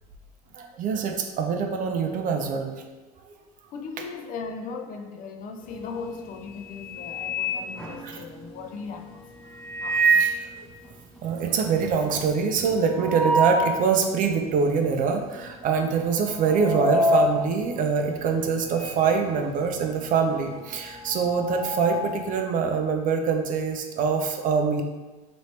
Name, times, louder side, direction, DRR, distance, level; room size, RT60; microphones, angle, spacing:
voice 1, 0.5-2.7 8.0-8.2 10.2-10.5 11.2-24.8, right 5 dB, 45° right, 0.5 m, -24 dB
voice 2, 3.7-9.2 9.8-10.3, left 5 dB, 45° left, 0.4 m, -38 dB
sound 1, 5.7-6.1 6.5-8.5 9.5-10.4 10.8-10.9 11.2-11.3 11.6-13.8 14.3-14.4 15.2-15.5 15.8-19.1 19.3-22.3, right 1 dB, 5° left, 0.7 m, -27 dB
3.1 x 2.7 x 3.2 m
supercardioid pair, 95°, 20 cm